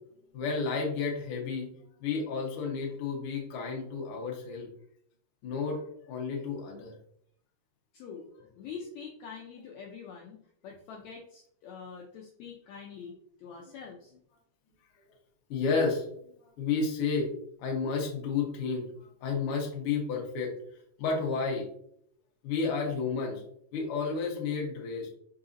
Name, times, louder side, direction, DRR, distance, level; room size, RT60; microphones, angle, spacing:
voice 1, 0.3-1.7 2.0-4.7 5.4-6.9 15.5-16.0 16.6-17.3 17.6-18.8 19.2-20.5 21.0-21.7 22.4-23.4 23.7-25.1, left 4 dB, 70° left, 0 dB, 1.3 m, -31 dB
voice 2, 7.9-14.1, left 6 dB, 85° left, 0 dB, 1.6 m, -45 dB
4.7 x 3.9 x 2.5 m, 0.67 s
omnidirectional pair, 3.8 m